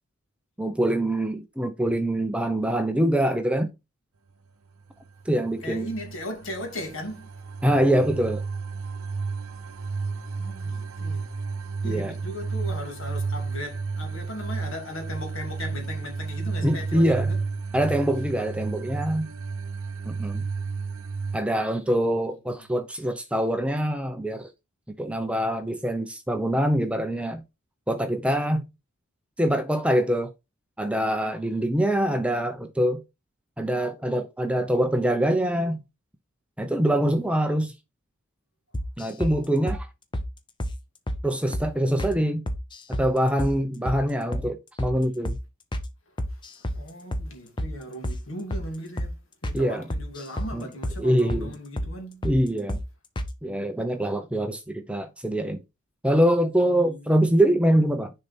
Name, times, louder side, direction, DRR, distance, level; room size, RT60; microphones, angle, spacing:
voice 1, 0.6-3.7 5.3-5.9 7.6-8.4 11.8-12.2 16.6-17.3 17.7-19.3 20.1-20.4 21.3-24.5 25.0-27.4 27.9-28.7 29.4-30.3 30.8-33.0 33.6-35.8 36.6-37.7 39.0-39.9 41.2-42.5 42.9-45.4 49.5-49.9 50.5-50.7 51.0-51.5 52.2-52.8 53.4-55.6 56.0-58.1, right 1 dB, 5° right, 0.6 m, -24 dB
sound 1, 5.1-21.4, right 4 dB, 70° right, 0.8 m, -32 dB
voice 2, 5.6-7.3 10.3-11.3 11.8-17.4 46.7-49.2 49.4-52.3 56.8-57.1, left 1 dB, 60° left, 2.5 m, -37 dB
sound 2, 38.7-39.4 39.7-39.8 40.1-40.3 40.6-40.8 41.1-41.2 41.5-41.7 42.0-42.2 42.5-43.1 43.4-43.6 43.9-44.0 44.3-44.5 44.8-45.0 45.3-45.4 45.7-45.9 46.2-46.8 47.1-47.3 47.6-47.7 48.0-48.2 48.5-48.7 49.0-49.1 49.4-49.6 49.9-50.5 50.8-51.0 51.3-51.5 51.8-51.9 52.2-52.4 52.7-52.9 53.2-53.3, equal, 20° left, 0.8 m, -29 dB
6.7 x 4.3 x 4.3 m
head